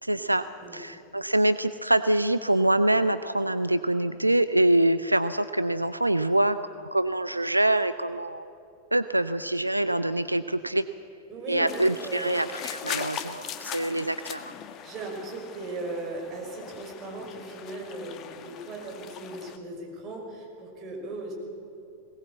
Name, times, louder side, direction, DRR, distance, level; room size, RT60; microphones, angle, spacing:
voice 1, 0.0-0.5 0.7-8.5 8.9-10.9 11.5-14.5, right 1 dB, 85° right, 13 dB, 0.4 m, -25 dB
voice 2, 11.3-12.3 14.8-21.3, right 2 dB, 30° right, 0 dB, 6.1 m, -37 dB
sound 1, 11.7-19.6, left 9 dB, 35° left, 1.4 m, -40 dB
21.5 x 18.5 x 8.0 m, 2.6 s
figure-of-eight pair, 90°, 0 cm